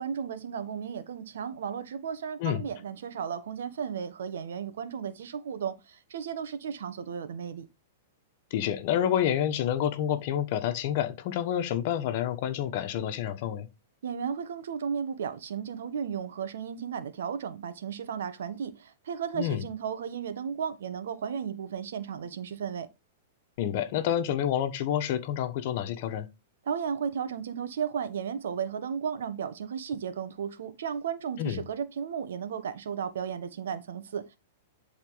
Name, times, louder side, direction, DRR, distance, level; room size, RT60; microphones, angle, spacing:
voice 1, 0.0-7.7 14.0-22.9 26.6-34.4, right 7 dB, 80° right, 1.5 m, -34 dB
voice 2, 8.5-13.7 19.3-19.6 23.6-26.3 31.4-31.6, left 10 dB, 50° left, 1.4 m, -28 dB
11.0 x 4.2 x 4.0 m
hypercardioid pair, 145°, 0 cm